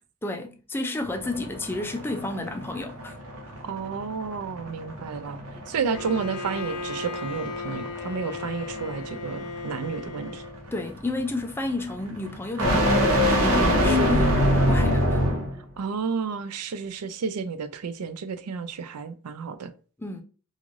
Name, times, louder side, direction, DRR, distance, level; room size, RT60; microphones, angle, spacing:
voice 1, 0.2-3.2 10.7-15.2 20.0-20.2, left 2 dB, 10° left, 0.3 m, -32 dB
sound 1, 1.0-15.6, equal, 70° right, 0.8 m, -26 dB
voice 2, 3.6-5.4 5.7-10.5 15.8-19.7, right 5 dB, 90° right, 0.4 m, -31 dB
Bowed string instrument, 5.9-10.7, left 4 dB, 90° left, 0.4 m, -36 dB
3.1 x 2.4 x 2.4 m
head